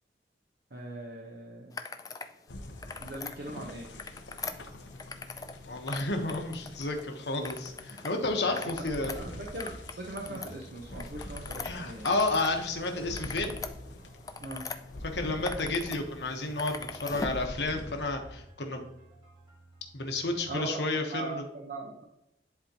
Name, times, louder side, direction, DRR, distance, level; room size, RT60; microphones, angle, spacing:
voice 1, 0.7-1.8 3.0-3.9 8.9-12.1 14.4-14.6 20.5-20.8 21.0-22.0, right 2 dB, 60° right, -1 dB, 0.9 m, -40 dB
sound 1, 1.7-2.3 2.7-3.4 3.8-5.6 5.8-7.0 7.4-8.1 8.4-12.5 12.9-14.8 15.2-16.0 16.3-17.4, left 4 dB, 20° left, 0.4 m, -40 dB
sound 2, 2.5-18.4, left 1 dB, 90° left, 0.9 m, -46 dB
sound 3, 4.5-20.5, equal, 25° right, 2.0 m, -55 dB
voice 2, 5.7-9.1 10.3-10.4 11.6-13.6 15.1-18.9 19.9-21.4, left 2 dB, 70° left, 4 dB, 1.2 m, -31 dB
10.5 x 4.3 x 2.9 m, 0.86 s
head